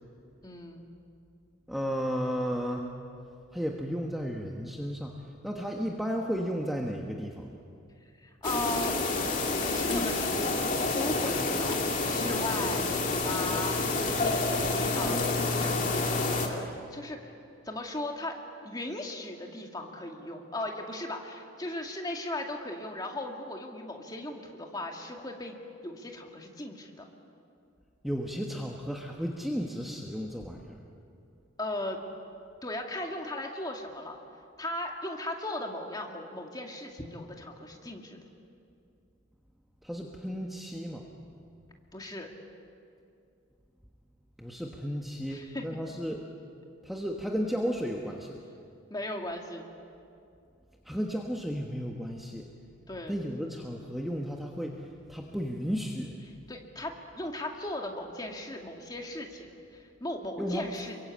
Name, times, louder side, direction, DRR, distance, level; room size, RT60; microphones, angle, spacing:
voice 1, 0.4-0.9 8.2-9.0 9.7-10.6 10.9-17.3 17.6-18.4 18.6-25.6 25.8-27.0 31.6-32.0 32.6-34.2 34.6-38.2 41.9-42.3 45.3-45.6 48.9-49.6 52.9-53.2 56.5-61.0, left 1 dB, 20° left, 1 dB, 2.3 m, -37 dB
voice 2, 1.7-2.9 3.5-5.2 5.4-7.5 28.0-30.8 39.8-41.0 44.4-46.2 46.8-48.4 50.8-52.5 53.1-56.2 60.4-60.7, equal, ahead, -1 dB, 1.2 m, -33 dB
sound 1, 8.4-16.5, left 3 dB, 35° left, 2.6 m, -28 dB
28.0 x 23.0 x 8.6 m, 2.5 s
head